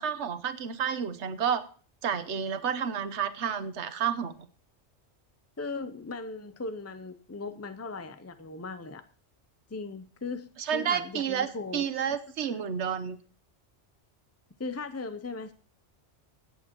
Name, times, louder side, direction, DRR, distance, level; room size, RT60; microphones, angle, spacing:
voice 1, 0.0-1.7 2.0-4.3 10.6-11.5 11.7-13.2, right 8 dB, 70° right, 1.2 m, -30 dB
voice 2, 5.6-9.0 9.7-11.9 14.6-15.5, left 3 dB, 25° left, 0.3 m, -38 dB
24.0 x 8.5 x 2.9 m
omnidirectional pair, 1.2 m